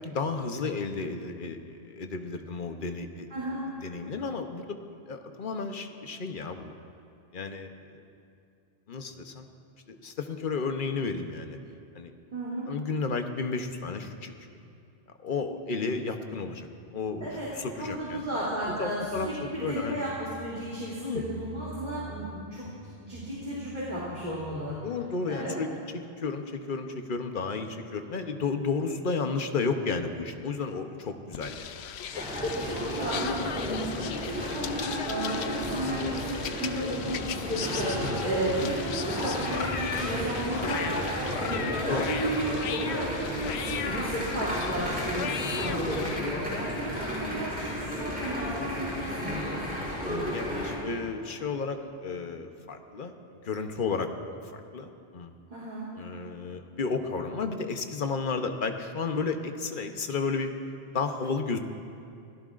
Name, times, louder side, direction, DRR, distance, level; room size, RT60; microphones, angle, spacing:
voice 1, 0.0-3.3 3.7-4.8 5.1-6.7 7.3-8.0 8.9-9.5 9.9-11.6 11.9-12.2 12.7-14.3 15.2-16.7 16.9-18.2 18.8-20.0 21.0-21.2 24.8-25.8 26.2-31.7 38.0-38.2 41.9-42.1 50.0-53.1 53.4-54.1 54.5-55.3 55.9-60.5 60.9-61.6, left 4 dB, 55° left, 6 dB, 1.0 m, -32 dB
voice 2, 3.3-3.6 12.3-12.7 17.2-17.5 17.7-22.6 23.0-24.8 25.3-25.6 32.4-41.6 41.9-49.6 55.5-55.9, right 1 dB, 50° right, -9 dB, 3.1 m, -33 dB
sound 1, 17.2-18.2 18.6-20.3 20.7-22.4 22.6-25.0, right 5 dB, 30° right, 0.8 m, -47 dB
sound 2, 31.3-46.2, left 8 dB, 90° left, 0.9 m, -37 dB
sound 3, 32.1-50.8, equal, 10° right, 4.8 m, -33 dB
25.5 x 17.0 x 2.5 m, 2.4 s
omnidirectional pair, 1.1 m